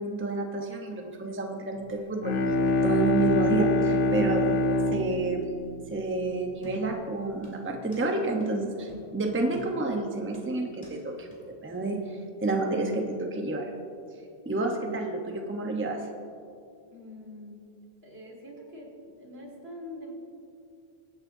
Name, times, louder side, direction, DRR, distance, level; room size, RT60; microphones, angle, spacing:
voice 1, 0.0-2.4 2.8-4.5 4.9-5.5 5.9-13.7 14.5-16.1, right 2 dB, 15° right, 2 dB, 0.8 m, -29 dB
Bowed string instrument, 2.0-6.8, left 2 dB, 60° left, 0.9 m, -26 dB
sound 1, 6.6-7.1 7.4-8.1 8.4-8.5 8.9-9.1 9.5-10.0 10.3-11.0 11.3-11.4, right 1 dB, 5° left, 2.5 m, -48 dB
voice 2, 16.9-17.6 18.0-20.1, left 1 dB, 70° right, -1 dB, 2.3 m, -44 dB
22.0 x 8.7 x 2.7 m, 2.5 s
omnidirectional pair, 1.1 m